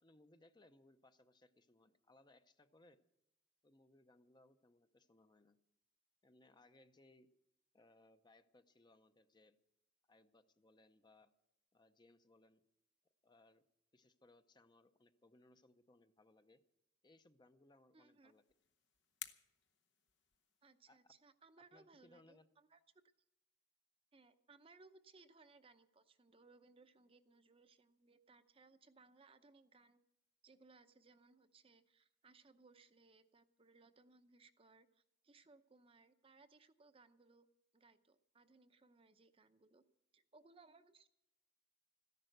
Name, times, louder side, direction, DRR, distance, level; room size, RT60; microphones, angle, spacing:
voice 1, 0.0-3.0 3.6-5.6 6.2-7.3 7.7-9.6 10.1-11.3 11.7-12.6 13.2-13.6 13.9-16.6 17.0-18.4 20.9-21.1 21.7-22.5, left 2 dB, 25° left, 10 dB, 0.7 m, -68 dB
voice 2, 17.9-18.3 20.6-22.8 24.1-30.0 30.4-37.5 37.7-39.8 40.1-41.1, right 3 dB, 30° right, 10 dB, 0.7 m, -66 dB
sound 1, 18.1-20.8, left 9 dB, 70° left, 0.9 m, -56 dB
14.0 x 11.0 x 7.9 m, 0.82 s
head